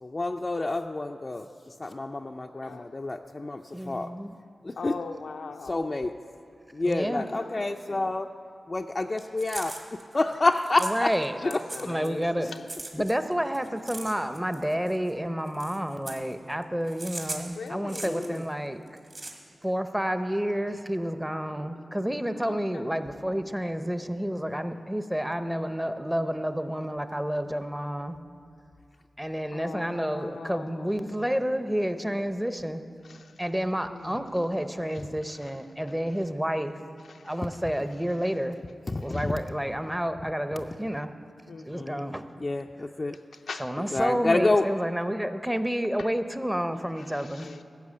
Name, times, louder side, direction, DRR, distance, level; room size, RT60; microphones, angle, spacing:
voice 1, 0.0-4.1 4.6-4.9 5.6-6.1 6.7-8.3 8.7-11.1 11.4-11.5 11.8-11.9 12.4-12.5 18.0-18.4 38.9-39.4 41.7-43.1 43.8-44.6, left 2 dB, 40° left, 0.4 m, -28 dB
voice 2, 2.5-3.3 4.8-6.1 7.1-8.0 11.4-12.7 17.5-18.4 22.4-22.8 29.5-31.1 33.0-33.3 33.8-34.3 34.6-34.7 37.1-37.3 39.1-39.2 41.5-42.0 43.5-43.7 46.0-46.1 47.1-47.6, left 4 dB, 85° left, 0.6 m, -42 dB
voice 3, 3.7-4.3 6.8-7.3 10.8-11.4 11.8-12.5 12.9-18.8 19.6-28.1 29.2-32.8 33.4-36.8 37.2-38.6 39.0-41.1 41.6-42.3 43.5-47.5, equal, 10° right, 0.7 m, -30 dB
sound 1, 9.2-11.3 11.5-12.2 12.5-15.1 15.5-16.3 16.9-18.5 18.9-19.3, right 2 dB, 45° right, 1.9 m, -39 dB
14.0 x 6.1 x 8.4 m
cardioid pair, 55°, 0 cm